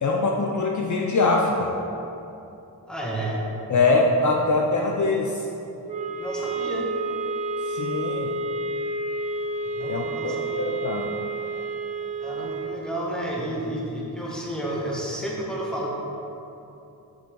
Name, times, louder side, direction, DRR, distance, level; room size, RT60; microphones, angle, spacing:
voice 1, 0.0-1.7 3.7-5.5 7.7-8.3 9.9-11.1, left 3 dB, 50° left, 1 dB, 0.6 m, -23 dB
voice 2, 2.9-3.4 6.2-6.9 9.7-10.7 12.2-15.9, right 1 dB, ahead, -4 dB, 1.8 m, -31 dB
sound 1, 5.9-12.8, right 2 dB, 20° right, 0.9 m, -30 dB
7.7 x 6.9 x 3.9 m, 2.9 s
cardioid pair, 80°, 38 cm